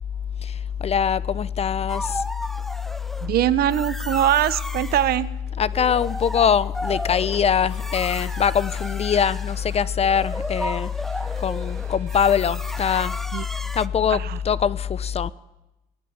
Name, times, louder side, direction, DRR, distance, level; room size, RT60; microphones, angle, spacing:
voice 1, 0.4-2.2 5.5-10.9 11.4-13.2 13.7-15.3, left 7 dB, 35° left, 0.8 m, -22 dB
sound 1, 1.9-3.3 3.7-5.2 5.6-13.9, equal, ahead, 0.9 m, -34 dB
voice 2, 3.2-5.3 13.3-13.5 14.1-14.4, right 12 dB, 65° right, 1.2 m, -22 dB
sound 2, 7.4-13.3, right 8 dB, 50° right, 3.8 m, -50 dB
24.0 x 17.5 x 9.7 m
cardioid pair, 110°, 17 cm